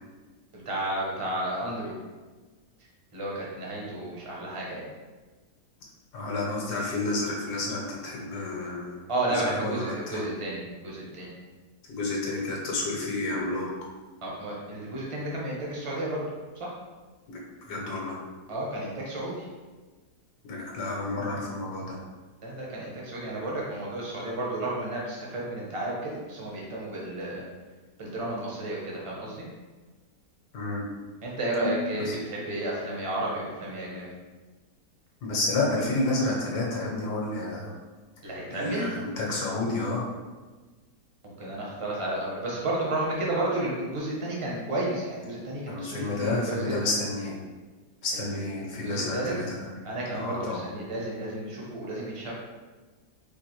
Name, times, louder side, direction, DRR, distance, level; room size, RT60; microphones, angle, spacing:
voice 1, 0.5-1.9 3.1-4.9 9.1-11.3 14.2-16.3 16.6-16.7 18.5-19.5 22.4-27.4 28.0-29.5 31.2-34.1 38.2-38.9 41.2-46.7 48.1-48.4 48.7-49.3 49.8-52.3, right 1 dB, 45° right, -4 dB, 0.4 m, -32 dB
voice 2, 6.1-10.3 11.9-13.7 17.3-18.2 20.4-22.0 30.5-30.8 31.6-32.1 35.2-37.7 38.2-40.1 45.7-47.4 48.0-49.7 50.1-50.6, left 2 dB, 80° left, -2 dB, 1.3 m, -30 dB
4.6 x 2.5 x 3.0 m, 1.3 s
omnidirectional pair, 1.8 m